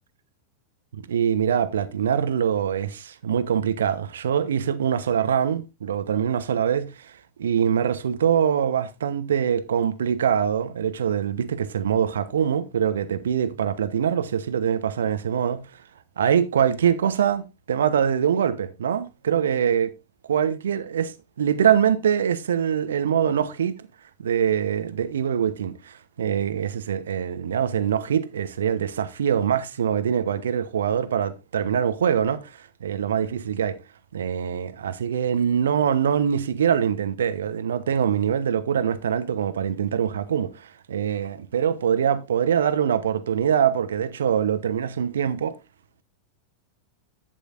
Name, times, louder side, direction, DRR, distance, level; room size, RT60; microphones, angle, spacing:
voice 1, 0.9-15.6 16.2-19.9 20.3-21.1 21.4-23.7 24.2-33.8 34.1-45.6, right 8 dB, 65° right, 1.1 m, -24 dB
11.5 x 8.3 x 2.6 m
figure-of-eight pair, 90°, 0 cm